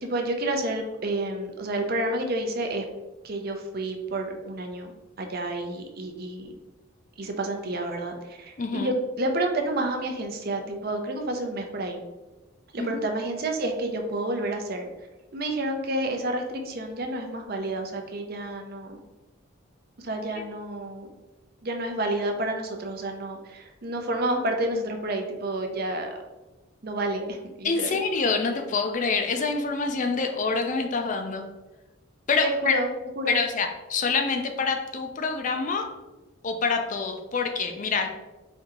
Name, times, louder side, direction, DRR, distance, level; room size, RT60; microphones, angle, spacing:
voice 1, 0.0-2.8 3.2-6.5 7.2-12.0 12.7-14.9 15.3-19.0 20.0-21.1 21.6-26.2 26.8-28.0 32.4-32.9 33.2-33.4, right 1 dB, 45° right, 4 dB, 0.6 m, -30 dB
voice 2, 8.6-8.9 12.8-13.0 27.6-31.5 32.3-32.8 33.3-35.9 36.4-38.1, left 4 dB, 35° left, 5 dB, 0.4 m, -26 dB
4.4 x 2.7 x 3.7 m, 1.1 s
head